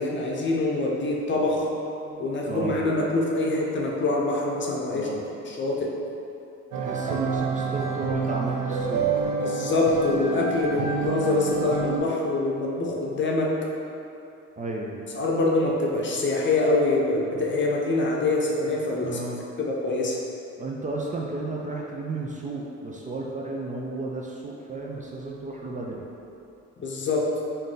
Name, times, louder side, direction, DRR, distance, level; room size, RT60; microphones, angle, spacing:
voice 1, 0.0-1.7 2.2-5.1 5.5-5.9 9.4-13.5 15.1-19.2 19.6-20.2 26.8-27.3, left 2 dB, 40° left, -2 dB, 0.7 m, -25 dB
voice 2, 2.0-2.8 4.9-5.2 6.8-9.2 10.7-10.9 14.6-15.0 19.0-19.5 20.6-26.1, right 2 dB, 25° right, -2 dB, 0.4 m, -33 dB
sound 1, 6.7-12.0, right 5 dB, 85° right, 0.5 m, -28 dB
3.7 x 2.7 x 3.8 m, 2.8 s
cardioid pair, 90°, 30 cm